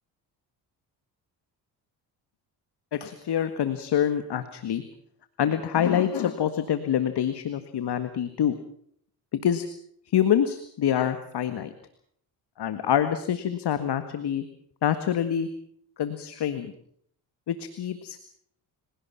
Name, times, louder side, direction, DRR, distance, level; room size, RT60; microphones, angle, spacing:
voice 1, 2.9-4.8 5.4-8.5 9.4-9.7 10.1-11.7 12.6-14.4 14.8-15.5 16.0-16.7 17.5-18.3, left 9 dB, 60° left, 10 dB, 1.9 m, -26 dB
28.5 x 17.5 x 5.8 m, 0.65 s
supercardioid pair, 70°, 45 cm